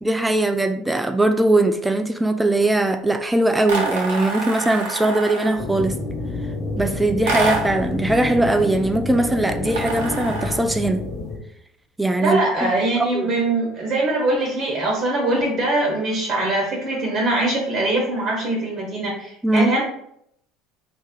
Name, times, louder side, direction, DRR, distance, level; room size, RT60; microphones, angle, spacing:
voice 1, 0.0-6.0 6.8-11.0 12.0-12.7 13.1-13.3 19.4-19.7, right 2 dB, 10° right, 0.3 m, -20 dB
sound 1, 3.7-5.6 7.3-7.9 9.7-10.7, right 3 dB, 80° right, 1.0 m, -26 dB
sound 2, 5.6-11.4, left 2 dB, 35° left, 1.2 m, -29 dB
voice 2, 12.2-19.8, right 2 dB, 45° right, 1.2 m, -22 dB
3.1 x 2.8 x 3.6 m
hypercardioid pair, 80°, 0 cm